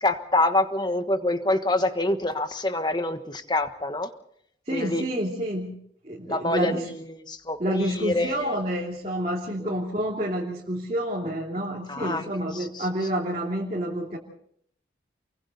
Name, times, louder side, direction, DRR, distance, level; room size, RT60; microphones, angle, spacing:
voice 1, 0.0-4.1 4.7-5.0 6.3-8.6 9.6-9.7 11.9-12.3 12.5-12.9, left 2 dB, 25° left, 8 dB, 1.4 m, -26 dB
voice 2, 4.7-5.7 6.0-6.9 7.6-14.2, equal, 35° right, -3 dB, 3.0 m, -29 dB
29.0 x 23.0 x 4.1 m, 0.66 s
head